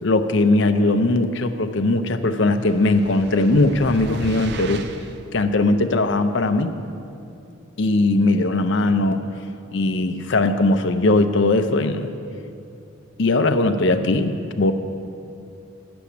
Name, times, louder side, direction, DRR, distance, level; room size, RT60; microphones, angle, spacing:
voice 1, 0.0-4.9 5.3-6.7 7.8-9.2 9.7-12.1 13.2-14.7, left 2 dB, 55° left, 8 dB, 0.6 m, -19 dB
sound 1, 2.6-5.2, right 4 dB, 50° right, 0.4 m, -35 dB
9.5 x 6.9 x 8.5 m, 2.6 s
head